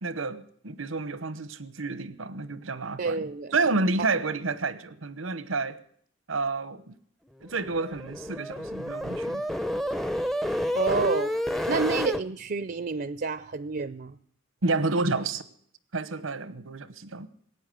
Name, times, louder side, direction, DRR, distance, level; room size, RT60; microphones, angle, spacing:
voice 1, 0.0-3.2 3.5-5.8 6.3-6.9 7.4-9.4 11.7-11.9 14.6-15.4 15.9-17.3, right 3 dB, 85° right, 1.0 m, -30 dB
voice 2, 3.0-3.6 10.7-11.3 11.7-14.2, right 4 dB, 50° right, 0.5 m, -29 dB
sound 1, 7.5-12.2, equal, ahead, 0.6 m, -30 dB
18.0 x 9.1 x 7.7 m
head